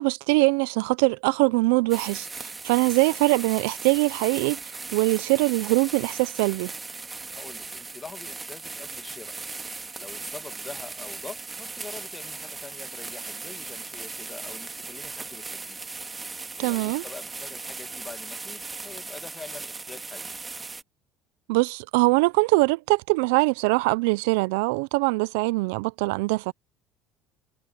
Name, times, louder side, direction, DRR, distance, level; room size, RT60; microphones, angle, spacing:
voice 1, 0.0-4.6 4.9-6.7 16.6-17.0 21.5-26.5, right 26 dB, 90° right, 0.3 m, -23 dB
sound 1, 1.9-20.8, right 3 dB, 20° right, 2.0 m, -38 dB
voice 2, 7.3-9.4 10.0-15.8 16.6-20.4, left 4 dB, 20° left, 1.7 m, -44 dB
cardioid pair, 115°, 0 cm